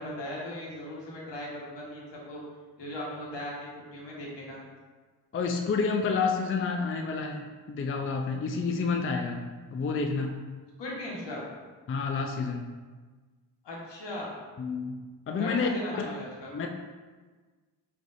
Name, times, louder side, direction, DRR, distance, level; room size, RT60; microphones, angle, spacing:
voice 1, 0.0-2.4 2.8-4.6 10.8-11.4 13.6-14.3 15.4-16.5, left 1 dB, 75° left, -4 dB, 1.3 m, -38 dB
voice 2, 5.3-10.4 11.9-12.7 14.6-15.0 15.3-16.1 16.5-16.7, left 4 dB, 30° left, 3 dB, 0.4 m, -29 dB
5.2 x 3.2 x 2.5 m, 1.4 s
cardioid pair, 55°, 43 cm